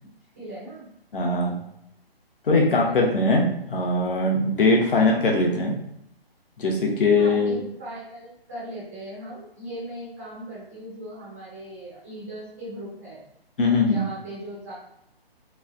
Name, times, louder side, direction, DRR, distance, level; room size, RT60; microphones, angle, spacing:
voice 1, 0.4-0.9 1.2-1.7 2.5-3.0 7.2-13.3 13.8-14.7, right 1 dB, 15° right, -8 dB, 0.5 m, -39 dB
voice 2, 1.1-1.6 2.4-5.7 6.6-7.6 13.6-14.0, left 2 dB, 60° left, -1 dB, 0.8 m, -21 dB
3.0 x 2.0 x 2.5 m, 0.79 s
hypercardioid pair, 155°, 31 cm